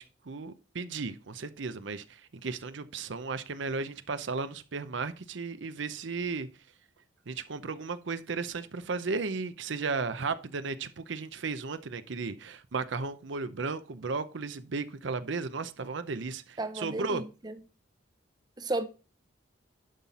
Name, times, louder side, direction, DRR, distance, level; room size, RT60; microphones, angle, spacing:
voice 1, 0.0-6.5 7.3-17.2, right 4 dB, 70° right, 0.7 m, -35 dB
voice 2, 16.6-17.5 18.6-18.8, right 2 dB, 20° right, 0.7 m, -33 dB
11.0 x 5.6 x 4.2 m
head